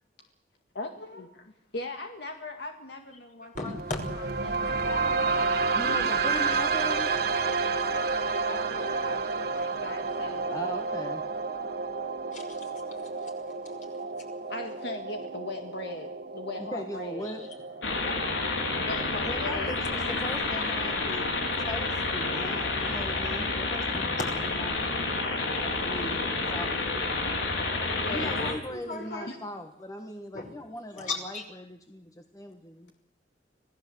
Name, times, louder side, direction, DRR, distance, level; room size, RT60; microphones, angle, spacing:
voice 1, 0.7-3.5 4.1-6.1 8.1-10.5 11.6-11.7 14.5-17.3 18.0-18.1 18.8-20.1 27.9-28.5 28.9-29.4, left 2 dB, 65° left, 4 dB, 2.0 m, -39 dB
voice 2, 3.4-4.0 12.3-13.3 17.2-17.5 22.8-23.1 24.2-24.3 28.2-29.3 30.3-30.4 30.9-31.4, left 3 dB, 45° left, 3 dB, 5.7 m, -37 dB
sound 1, 3.5-19.5, right 4 dB, 60° right, 1.7 m, -31 dB
voice 3, 5.7-7.1 10.4-11.3 16.6-17.5 19.2-24.8 25.6-26.8 28.1-32.9, left 1 dB, 20° left, 5 dB, 1.5 m, -39 dB
sound 2, 17.8-28.5, left 3 dB, 85° left, 4.0 m, -29 dB
26.5 x 17.5 x 7.9 m, 0.81 s
head